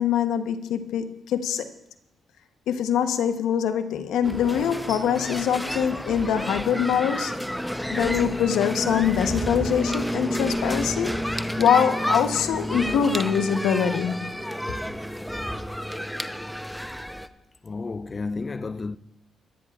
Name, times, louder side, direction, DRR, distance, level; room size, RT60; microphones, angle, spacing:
voice 1, 0.0-1.7 2.7-7.3 7.9-14.3, left 8 dB, 85° left, 0.9 m, -24 dB
sound 1, 4.2-17.3, equal, ahead, 0.7 m, -30 dB
voice 2, 17.6-19.0, left 3 dB, 35° left, 0.5 m, -31 dB
24.0 x 10.0 x 2.4 m
supercardioid pair, 60°, 0 cm